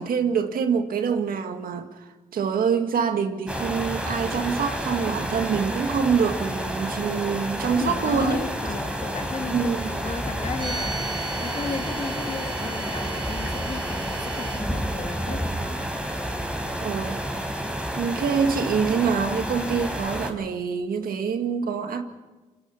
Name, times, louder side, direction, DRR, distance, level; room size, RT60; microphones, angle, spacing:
voice 1, 0.0-2.0 2.3-8.5 9.5-9.9 16.8-17.2 18.0-22.0, right 6 dB, 90° right, 1.9 m, -25 dB
sound 1, 3.5-20.3, equal, 5° right, 4.7 m, -30 dB
voice 2, 7.8-11.0 11.4-15.5, left 5 dB, 50° left, 1.7 m, -34 dB
sound 2, 10.5-14.6, right 3 dB, 35° right, 6.8 m, -36 dB
27.0 x 22.5 x 5.7 m
cardioid pair, 65°, 14 cm